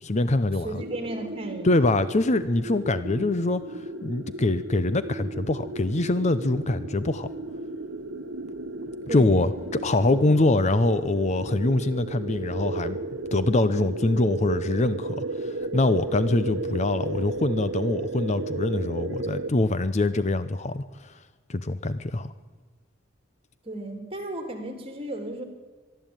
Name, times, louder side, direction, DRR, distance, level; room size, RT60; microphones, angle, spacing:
voice 1, 0.0-0.7 1.6-7.3 9.1-9.5 9.8-13.0 13.3-20.8 21.5-22.3, left 2 dB, 35° left, 13 dB, 0.7 m, -24 dB
voice 2, 0.6-1.9 3.1-3.3 9.1-9.7 10.1-10.3 23.6-25.4, right 1 dB, 30° right, 6 dB, 3.2 m, -35 dB
sound 1, 0.8-19.5, right 2 dB, 70° right, 1.0 m, -34 dB
23.0 x 12.5 x 9.0 m, 1.4 s
head